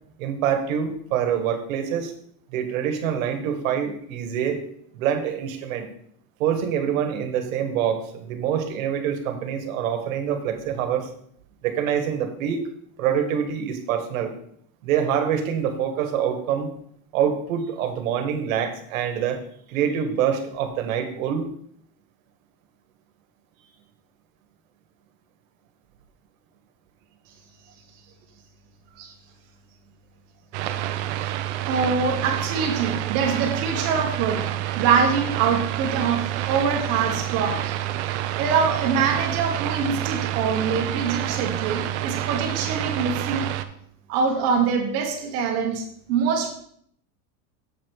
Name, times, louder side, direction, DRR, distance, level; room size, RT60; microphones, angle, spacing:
voice 1, 0.2-2.1 2.5-4.6 4.9-5.9 6.4-11.1 11.6-12.6 13.0-14.3 14.8-16.7 17.1-19.4 19.7-21.5, right 8 dB, 70° right, 1.5 m, -25 dB
sound 1, 30.5-43.6, right 13 dB, 55° right, 0.6 m, -28 dB
voice 2, 31.7-37.8 38.4-43.5 44.1-46.5, right 6 dB, 35° right, 1.2 m, -24 dB
7.4 x 5.1 x 4.6 m
supercardioid pair, 175°, 42 cm